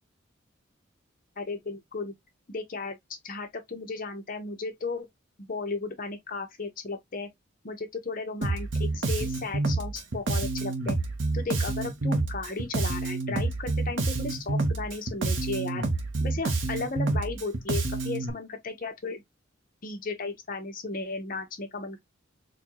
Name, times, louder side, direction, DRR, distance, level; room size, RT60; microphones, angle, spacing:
voice 1, 1.4-2.1 2.5-3.0 3.2-5.1 5.4-7.3 7.6-11.0 11.3-15.8 16.2-19.2 19.8-22.0, left 3 dB, 45° left, 0.9 m, -35 dB
Bass guitar, 8.4-18.3, right 3 dB, 65° right, 0.9 m, -28 dB
4.2 x 2.3 x 2.9 m
head